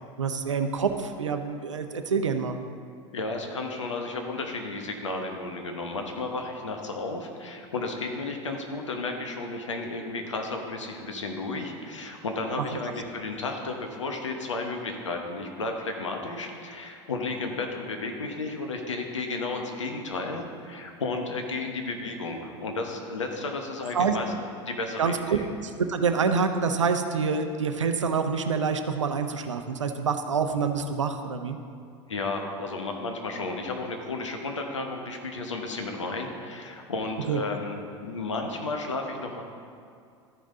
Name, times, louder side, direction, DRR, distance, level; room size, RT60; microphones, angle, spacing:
voice 1, 0.2-2.6 12.6-12.7 23.9-24.2 25.0-31.6 37.3-37.4, right 5 dB, 90° right, 7 dB, 0.6 m, -26 dB
voice 2, 3.1-24.3 24.7-25.5 32.1-39.4, left 3 dB, 85° left, 3 dB, 1.0 m, -33 dB
13.0 x 5.3 x 3.8 m, 2.3 s
hypercardioid pair, 80°, 15 cm